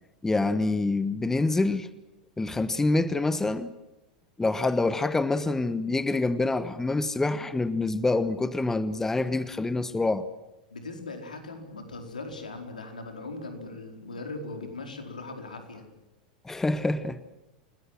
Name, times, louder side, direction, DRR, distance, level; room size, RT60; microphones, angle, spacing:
voice 1, 0.2-1.9 2.4-3.7 4.4-10.3 16.4-17.2, left 2 dB, 10° left, 1.3 m, -26 dB
voice 2, 10.7-15.9, left 3 dB, 80° left, 4.6 m, -39 dB
29.5 x 20.5 x 7.7 m
figure-of-eight pair, 85°, 4 cm